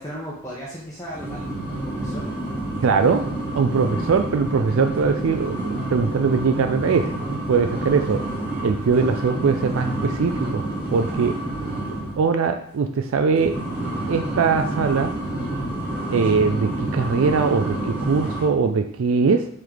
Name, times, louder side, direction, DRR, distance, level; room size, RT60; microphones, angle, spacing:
voice 1, 0.0-2.3, equal, 15° left, -6 dB, 1.0 m, -36 dB
sound 1, 1.1-12.2 13.3-18.4, right 1 dB, 5° right, 1.6 m, -29 dB
voice 2, 2.8-3.2 3.5-8.2 8.6-10.6 10.9-11.3 12.2-13.6 14.1-15.1 16.1-19.5, right 5 dB, 65° right, 6 dB, 0.4 m, -21 dB
7.4 x 3.3 x 3.9 m, 0.70 s
head